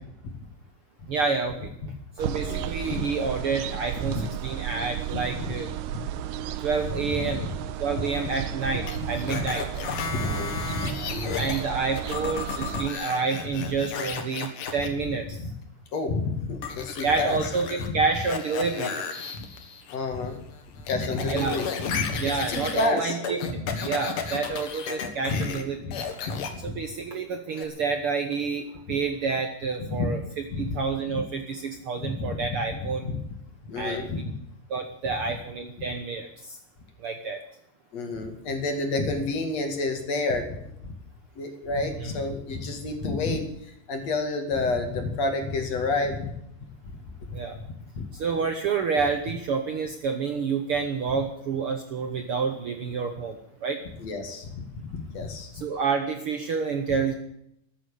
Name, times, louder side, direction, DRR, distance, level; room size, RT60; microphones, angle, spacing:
voice 1, 1.1-1.7 2.2-5.7 6.6-7.5 7.8-9.6 11.4-15.4 17.0-19.0 21.3-21.6 22.2-25.8 26.6-30.2 30.6-33.1 33.8-34.2 34.7-36.6 37.0-37.4 42.0-42.1 47.3-47.6 48.1-53.8 55.5-57.1, right 5 dB, 60° right, 6 dB, 1.5 m, -28 dB
sound 1, 2.2-12.9, right 10 dB, 90° right, 2.4 m, -34 dB
voice 2, 2.5-3.1 4.0-4.3 5.3-5.5 7.1-7.4 9.3-9.4 10.1-11.5 13.6-13.7 15.4-15.5 15.9-17.4 17.9-18.0 19.3-19.4 19.9-20.4 20.9-22.2 22.5-23.2 23.4-23.5 25.3-25.5 25.8-25.9 26.2-26.7 29.8-30.1 30.5-30.8 31.1-31.2 32.0-32.9 33.7-34.2 37.9-40.6 40.8-40.9 41.4-46.3 48.0-48.1 54.0-54.6 54.9-55.5, left 3 dB, 55° left, 5 dB, 3.2 m, -29 dB
sound 2, 8.9-11.6 11.9-14.9 16.6-17.9 18.1-20.0 20.3-25.6 25.9-26.5 27.5-27.7, left 7 dB, 80° left, 3.2 m, -34 dB
14.0 x 9.4 x 9.9 m, 0.75 s
omnidirectional pair, 3.7 m